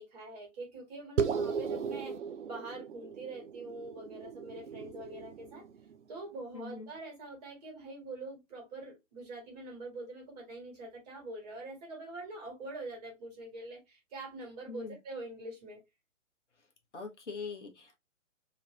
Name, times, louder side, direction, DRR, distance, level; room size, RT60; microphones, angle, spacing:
voice 1, 0.0-2.2 2.5-5.7 6.1-15.8, right 2 dB, 30° right, 1.5 m, -44 dB
sound 1, 1.2-6.0, right 6 dB, 65° right, 0.5 m, -36 dB
voice 2, 6.5-6.9 14.7-15.0 16.9-18.0, left 5 dB, 65° left, 1.0 m, -42 dB
3.1 x 2.5 x 2.8 m
figure-of-eight pair, 130°, 39 cm